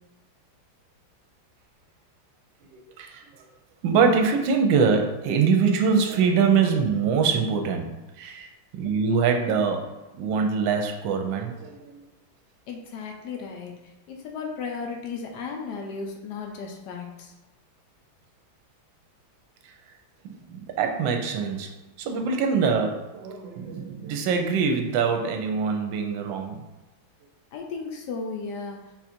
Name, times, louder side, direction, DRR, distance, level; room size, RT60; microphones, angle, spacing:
voice 1, 2.7-3.3 3.8-7.9 8.2-9.9 10.2-12.0 19.6-19.7 20.5-21.7 22.0-26.6, right 5 dB, 75° right, 4 dB, 1.3 m, -24 dB
voice 2, 12.7-13.7 14.1-17.3 27.5-28.9, left 5 dB, 70° left, 2 dB, 1.0 m, -35 dB
4.0 x 2.4 x 4.2 m, 1.1 s
omnidirectional pair, 2.2 m